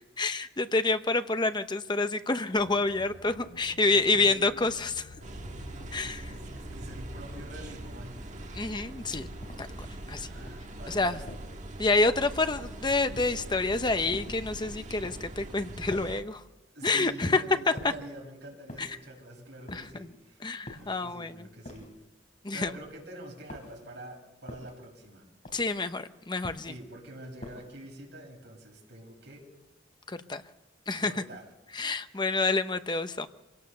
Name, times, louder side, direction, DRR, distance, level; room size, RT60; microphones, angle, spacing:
voice 1, 0.2-5.1 5.9-6.3 8.5-9.3 9.6-9.7 10.1-10.3 10.9-11.2 11.8-16.4 16.8-17.4 18.8-18.9 19.7-19.8 20.4-21.3 22.4-22.7 25.5-26.7 30.1-30.4 30.9-31.1 31.7-33.3, left 3 dB, 25° left, 10 dB, 0.8 m, -28 dB
sound 1, 2.5-8.1, equal, 65° left, 6.0 m, -47 dB
voice 2, 3.9-4.5 6.0-8.4 10.2-11.6 16.7-20.4 20.8-21.9 22.5-25.3 26.6-29.5 31.0-31.5, right 1 dB, 60° right, 0 dB, 6.7 m, -46 dB
sound 2, 5.2-16.2, right 1 dB, 40° right, 1.6 m, -42 dB
sound 3, 9.4-9.8 10.3-10.7 11.3-11.6 12.2-12.6 13.1-13.6 14.1-14.5 15.0-15.4 15.9-16.3 16.9-17.2 17.8-18.1 18.7-19.1 19.7-20.1 20.7-21.0 21.6-22.1 22.6-23.0 23.5-23.9 24.5-24.9 25.4-25.8 26.4-26.8 27.4-27.8, left 1 dB, 40° left, 3.3 m, -46 dB
25.5 x 17.5 x 6.9 m, 1.0 s
head